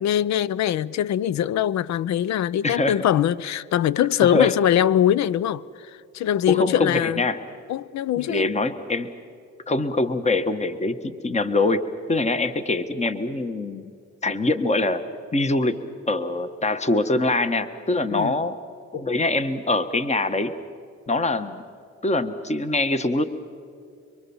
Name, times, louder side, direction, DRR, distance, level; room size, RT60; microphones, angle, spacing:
voice 1, 0.0-7.2 7.7-8.5 18.1-18.3, left 11 dB, 65° left, 0.6 m, -22 dB
voice 2, 2.6-3.0 4.2-4.5 6.5-7.4 8.1-9.1 9.7-13.8 14.2-15.0 15.3-15.8 16.1-18.6 18.9-20.5 21.1-21.6 22.0-23.2, left 2 dB, 20° left, 1.4 m, -23 dB
25.5 x 24.0 x 7.2 m
cardioid pair, 90°, 30 cm